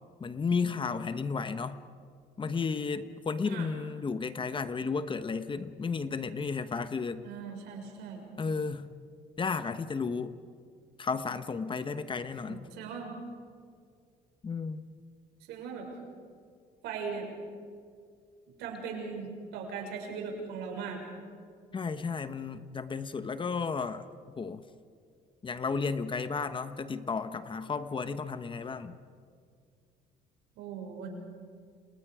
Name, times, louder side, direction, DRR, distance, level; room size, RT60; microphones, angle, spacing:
voice 1, 0.2-1.8 2.4-7.2 8.4-8.9 9.4-10.3 11.0-12.7 14.4-14.8 21.7-24.0 24.4-24.6 25.4-29.0, left 5 dB, 30° left, 11 dB, 1.2 m, -33 dB
voice 2, 7.2-8.2 12.4-13.1 15.5-15.9 16.8-17.3 18.6-21.0 30.6-31.1, right 5 dB, 85° right, 1 dB, 6.6 m, -39 dB
30.0 x 29.0 x 5.0 m, 2.2 s
cardioid pair, 110°, 17 cm